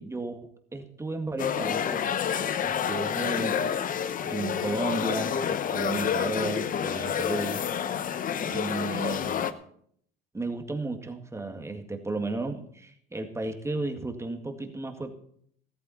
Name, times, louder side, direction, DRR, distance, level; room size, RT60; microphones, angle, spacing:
voice 1, 0.0-2.1 2.6-3.6 4.2-7.7 8.4-9.6 10.3-15.1, right 2 dB, 15° right, 5 dB, 2.0 m, -34 dB
sound 1, 1.4-9.5, left 8 dB, 40° left, 0.9 m, -29 dB
14.0 x 13.5 x 4.3 m, 0.63 s
supercardioid pair, 85°, 21 cm